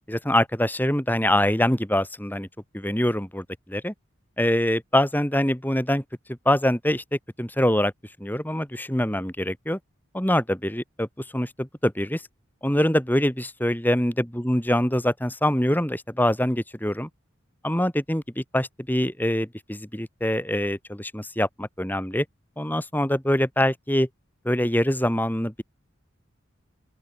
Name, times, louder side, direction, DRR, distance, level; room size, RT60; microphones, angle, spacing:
voice 1, 0.1-2.5 2.7-3.9 4.4-6.0 6.3-7.9 8.2-9.8 10.1-12.2 12.6-17.1 17.6-22.2 22.6-24.1 24.5-25.6, left 1 dB, 10° left, 3.5 m, -24 dB
open air
head